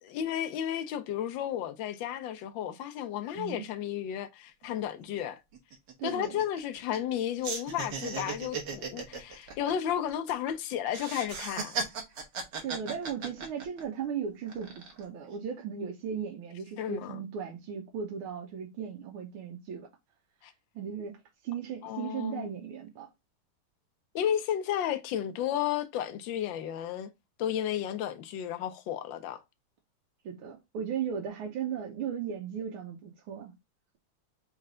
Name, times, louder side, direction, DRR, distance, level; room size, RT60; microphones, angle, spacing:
voice 1, 0.1-5.4 6.0-11.8 16.8-17.2 20.4-20.5 21.8-22.5 24.1-27.1 27.4-29.4, left 10 dB, 70° left, 1.3 m, -33 dB
voice 2, 3.3-3.7 6.0-6.4 12.6-19.9 20.7-21.2 21.4-23.1 30.2-33.5, right 7 dB, 90° right, 1.7 m, -36 dB
sound 1, 4.6-4.7 5.0-5.2 5.5-7.2 7.4-10.5 10.9-14.0 14.5-15.0, right 4 dB, 60° right, 1.6 m, -37 dB
4.4 x 3.2 x 3.7 m
omnidirectional pair, 2.3 m